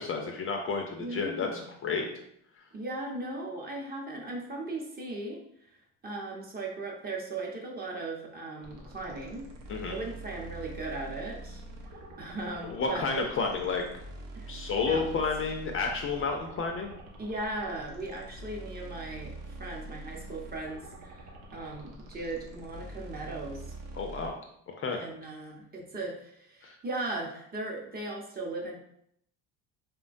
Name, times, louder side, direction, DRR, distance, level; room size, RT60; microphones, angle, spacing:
voice 1, 0.0-2.1 9.7-9.9 12.6-13.8 14.5-16.9 24.0-24.4 24.8-25.0 26.6-26.7, left 4 dB, 35° left, 3 dB, 0.4 m, -31 dB
voice 2, 1.0-1.6 2.7-5.4 6.0-9.4 9.9-11.6 12.2-13.2 14.3-14.5 14.8-15.2 17.2-23.8 24.9-28.8, right 2 dB, 25° right, -1 dB, 0.7 m, -38 dB
sound 1, 8.6-24.3, right 2 dB, 75° right, 0.7 m, -45 dB
3.1 x 2.1 x 2.5 m, 0.70 s
supercardioid pair, 85°, 36 cm